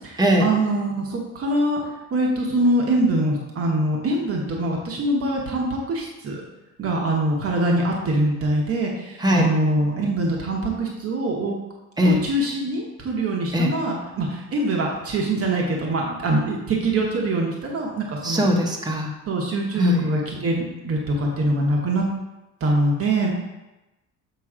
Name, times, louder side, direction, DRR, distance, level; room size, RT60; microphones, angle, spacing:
voice 1, 0.0-1.8 2.1-6.4 6.8-11.6 12.0-18.4 19.3-22.0 22.6-23.3, right 1 dB, 45° right, -1 dB, 1.0 m, -23 dB
voice 2, 18.2-19.1 19.8-20.1, left 1 dB, 10° right, 0 dB, 0.9 m, -20 dB
7.0 x 3.1 x 4.9 m, 1.0 s
cardioid pair, 140°, 33 cm